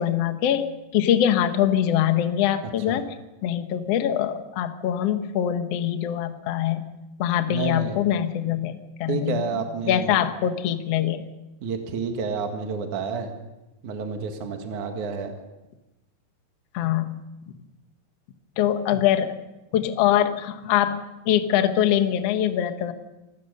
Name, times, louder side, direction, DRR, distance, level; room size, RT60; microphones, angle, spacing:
voice 1, 0.0-3.1 3.4-6.8 7.2-8.7 9.0-9.5 9.9-11.3 16.7-17.2 18.6-19.4 19.7-22.9, left 10 dB, 65° left, 8 dB, 1.6 m, -23 dB
voice 2, 7.5-8.0 9.1-10.2 11.6-13.3 13.8-15.3, right 5 dB, 55° right, 4 dB, 2.9 m, -29 dB
27.5 x 16.0 x 6.7 m, 1.0 s
omnidirectional pair, 4.6 m